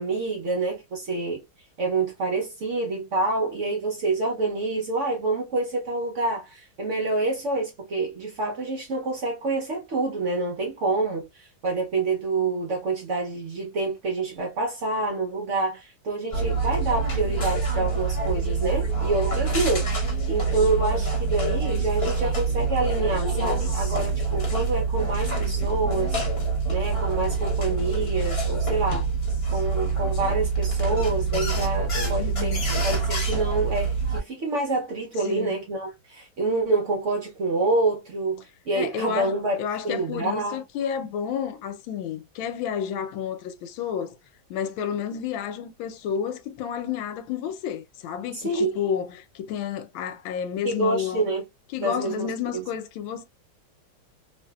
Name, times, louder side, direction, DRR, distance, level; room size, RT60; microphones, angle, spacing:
voice 1, 0.0-1.4 1.8-19.9 20.3-26.2 26.7-29.1 29.5-32.6 32.8-40.6 48.3-48.7 50.6-51.4 51.8-52.6, right 2 dB, 70° right, 0.7 m, -27 dB
sound 1, 16.3-34.2, right 4 dB, 40° left, 0.9 m, -25 dB
voice 2, 32.2-32.7 35.2-35.6 38.7-39.3 39.6-44.2 44.5-51.2 51.7-53.2, left 8 dB, 90° left, 1.4 m, -31 dB
3.0 x 2.6 x 2.2 m
omnidirectional pair, 2.1 m